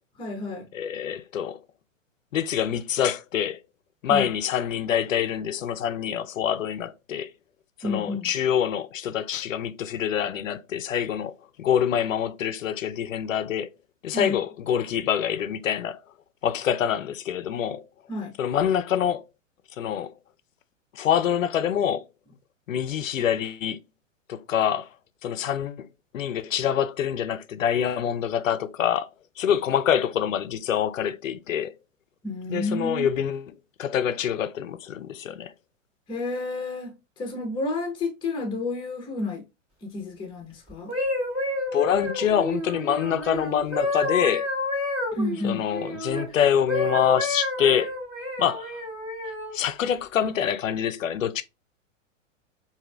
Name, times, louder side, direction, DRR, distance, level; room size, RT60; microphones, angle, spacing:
voice 1, 0.2-0.7 4.1-4.3 7.8-8.3 14.1-14.3 18.1-18.3 32.2-33.2 36.1-39.4 39.8-40.9 45.1-45.7, left 2 dB, 10° left, 0.9 m, -30 dB
voice 2, 0.7-1.6 2.3-3.6 4.0-7.3 7.8-13.7 14.0-16.0 16.4-17.8 18.4-19.2 19.8-20.1 20.9-22.0 22.7-23.8 24.3-24.9 25.2-25.9 26.1-29.1 29.4-31.7 32.5-33.5 33.8-35.5 41.7-44.5 45.4-47.9 48.4-48.8 49.5-51.4, left 9 dB, 85° left, 0.6 m, -25 dB
sound 1, 40.7-46.3 46.7-49.6 50.2-50.5, left 2 dB, 15° right, 2.5 m, -29 dB
4.9 x 2.7 x 2.3 m
hypercardioid pair, 115°, 39 cm